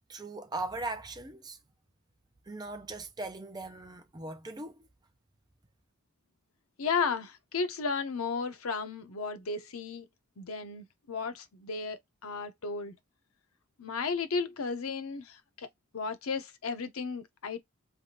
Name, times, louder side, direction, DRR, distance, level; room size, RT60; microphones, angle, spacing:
voice 1, 0.1-1.6 2.5-4.9, right 2 dB, 20° right, 0.5 m, -39 dB
voice 2, 6.8-10.1 10.4-13.0 13.8-15.7 15.9-17.6, left 4 dB, 85° left, 0.7 m, -34 dB
3.4 x 2.5 x 2.7 m
head